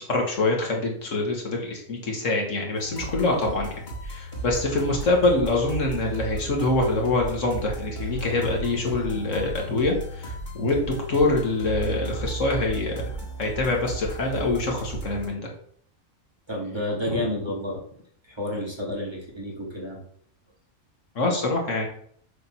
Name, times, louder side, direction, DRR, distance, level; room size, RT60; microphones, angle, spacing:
voice 1, 0.0-3.7 4.0-13.1 13.4-15.4 17.1-17.2 21.2-21.9, left 2 dB, 75° left, 0 dB, 1.9 m, -25 dB
sound 1, 2.8-15.3, right 2 dB, 35° left, 1.8 m, -35 dB
voice 2, 16.5-17.8 18.3-20.0, left 1 dB, 20° right, -2 dB, 1.7 m, -30 dB
6.9 x 3.7 x 5.5 m, 0.62 s
omnidirectional pair, 1.3 m